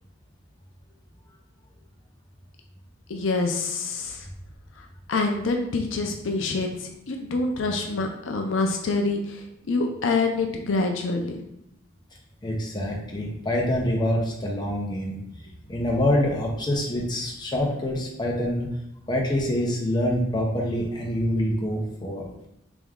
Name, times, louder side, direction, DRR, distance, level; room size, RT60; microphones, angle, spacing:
voice 1, 3.1-4.3 4.8-11.3, left 3 dB, 70° left, 3 dB, 0.5 m, -26 dB
voice 2, 12.4-15.2 15.7-18.7 19.1-22.5, left 1 dB, 20° left, -1 dB, 0.7 m, -26 dB
3.5 x 3.0 x 3.6 m, 0.80 s
head